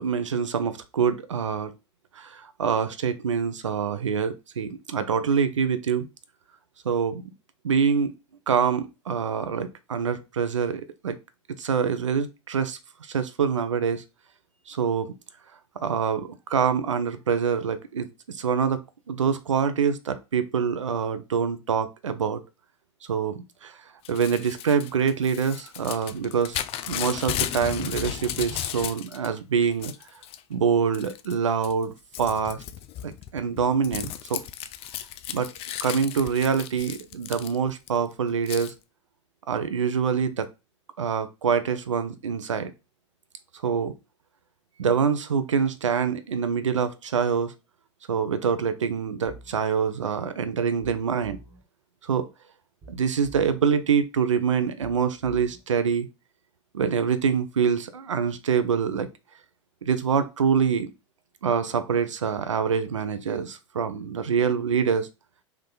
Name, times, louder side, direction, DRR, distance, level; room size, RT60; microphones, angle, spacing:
voice 1, 0.0-1.7 2.2-6.1 6.8-7.2 7.6-8.1 8.5-11.2 11.6-14.0 14.7-15.1 15.8-18.8 19.1-22.4 23.1-23.8 24.1-26.6 26.9-29.9 30.5-32.6 33.0-34.4 35.3-35.5 35.8-38.7 39.5-40.5 41.0-42.7 43.6-43.9 44.8-47.5 48.1-51.4 52.0-52.3 52.9-56.1 56.7-59.1 59.8-60.9 61.4-65.1, right 6 dB, 85° right, 0.6 m, -25 dB
Crumpling crinkling / Tearing, 24.0-29.3 29.6-30.4 30.9-31.3 31.6-37.9 38.5-38.7, left 11 dB, 40° left, 0.5 m, -35 dB
sound 1, 49.3-49.6 50.8-51.6 52.8-53.6 54.8-55.6, right 2 dB, 30° right, 1.7 m, -47 dB
3.5 x 3.2 x 3.8 m
hypercardioid pair, 95°, 15 cm